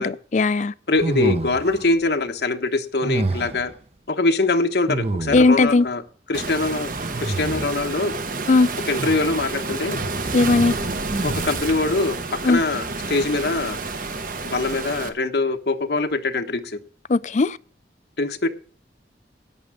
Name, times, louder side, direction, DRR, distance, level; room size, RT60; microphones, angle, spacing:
voice 1, 0.0-0.7 5.3-5.9 8.5-8.7 10.3-10.7 12.4-12.6 17.1-17.6, left 3 dB, 45° left, 0.4 m, -17 dB
voice 2, 0.9-3.7 4.1-6.0 6.3-6.9 7.2-8.2 8.8-10.0 11.2-13.8 14.4-16.8 18.2-18.5, left 3 dB, 65° left, 1.2 m, -23 dB
sound 1, 1.0-1.9 3.0-3.7 4.9-5.7 6.9-7.9 9.0-9.5 11.1-11.8, right 2 dB, 35° right, 0.8 m, -28 dB
Waves surf, 6.3-15.1, right 3 dB, 50° right, 1.2 m, -29 dB
11.0 x 8.6 x 5.0 m
head